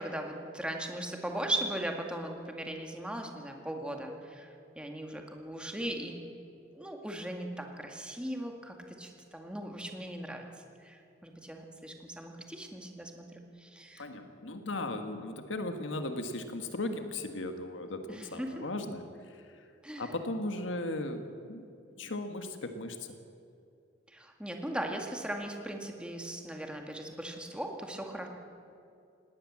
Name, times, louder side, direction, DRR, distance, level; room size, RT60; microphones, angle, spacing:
voice 1, 0.0-6.2 6.7-10.5 10.8-14.1 18.1-18.7 19.8-20.1 24.1-28.3, right 1 dB, 5° right, 2 dB, 2.0 m, -38 dB
voice 2, 14.0-19.0 20.0-21.6 22.0-23.0, left 2 dB, 80° left, 7 dB, 1.5 m, -37 dB
19.0 x 18.5 x 7.5 m, 2.5 s
head